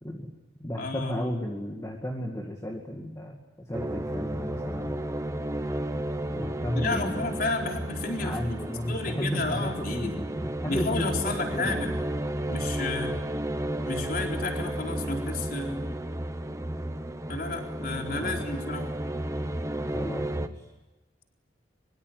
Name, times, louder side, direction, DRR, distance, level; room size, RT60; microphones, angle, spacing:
voice 1, 0.0-0.3 0.6-5.1 6.3-7.3 8.2-11.1 11.5-11.8 13.1-13.3 18.2-18.5 19.9-20.7, equal, 15° left, 0 dB, 2.2 m, -33 dB
voice 2, 0.8-1.3 6.7-10.1 10.6-12.0 12.5-13.2 13.9-15.8 17.3-18.9, left 3 dB, 50° left, 2 dB, 4.1 m, -32 dB
sound 1, 3.7-20.5, right 1 dB, 15° right, 1.1 m, -32 dB
24.5 x 23.5 x 9.5 m, 1.1 s
head